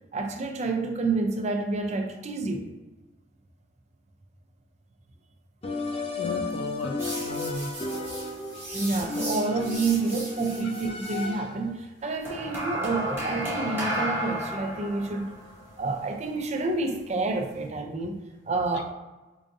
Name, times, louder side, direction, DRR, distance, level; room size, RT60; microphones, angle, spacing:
voice 1, 0.1-2.7 8.7-15.4 15.8-18.9, right 3 dB, 40° right, 4 dB, 0.4 m, -29 dB
sound 1, 5.6-11.7, left 3 dB, 30° left, 0.5 m, -34 dB
voice 2, 6.2-7.7 8.7-8.8 10.6-10.7 18.6-18.8, left 2 dB, 85° left, 7 dB, 0.4 m, -35 dB
sound 2, 7.0-11.3 12.2-17.6, right 1 dB, 15° right, 1.0 m, -35 dB
4.7 x 2.5 x 2.6 m, 1.1 s
head